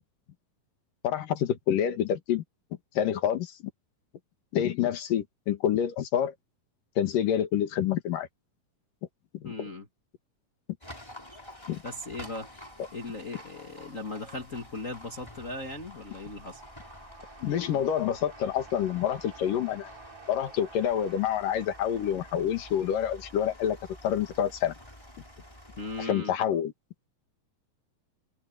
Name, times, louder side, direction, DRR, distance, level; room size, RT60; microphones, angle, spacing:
voice 1, 1.0-2.4 2.9-3.5 4.5-6.3 7.0-8.3 9.4-9.5 11.7-11.8 17.4-19.9 20.3-23.8 24.0-24.7 26.0-26.7, left 9 dB, 75° left, 3.3 m, -27 dB
voice 2, 9.4-9.9 11.8-12.5 12.9-16.6 25.8-26.3, left 2 dB, 40° left, 1.1 m, -38 dB
Livestock farm animals working animals, 10.8-26.1, left 1 dB, 5° left, 4.7 m, -49 dB
sound 1, 15.1-24.4, right 4 dB, 40° right, 7.2 m, -52 dB
open air
omnidirectional pair, 4.0 m